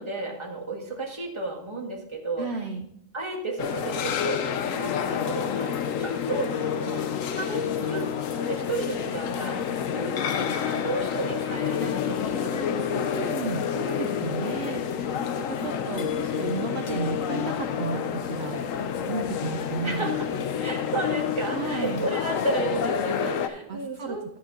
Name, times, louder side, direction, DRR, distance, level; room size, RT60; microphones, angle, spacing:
voice 1, 0.0-2.5 3.1-5.7 6.0-7.0 7.3-8.1 8.4-9.6 9.9-13.3 14.0-14.3 19.8-20.2 20.6-24.2, right 2 dB, 20° right, 0 dB, 1.7 m, -33 dB
voice 2, 2.4-2.9 12.9-14.8 15.3-18.6 19.1-20.7 21.5-22.1 23.7-24.2, right 5 dB, 60° right, 4 dB, 1.0 m, -33 dB
sound 1, 3.6-23.5, left 8 dB, 85° left, 1.1 m, -29 dB
10.5 x 8.2 x 3.8 m, 0.72 s
omnidirectional pair, 1.4 m